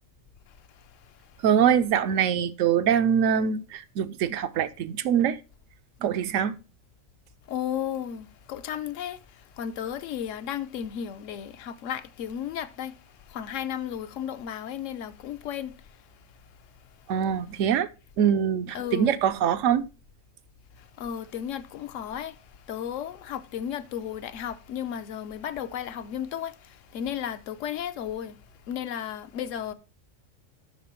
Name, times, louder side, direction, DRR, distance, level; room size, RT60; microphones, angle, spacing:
voice 1, 0.5-1.4 7.5-16.2 18.7-19.2 20.7-28.4 28.7-29.7, left 9 dB, 80° left, 1.0 m, -34 dB
voice 2, 1.4-5.4 6.0-6.6 17.1-17.9 18.2-19.9, right 8 dB, 80° right, 1.0 m, -23 dB
11.0 x 3.8 x 4.2 m
omnidirectional pair, 1.3 m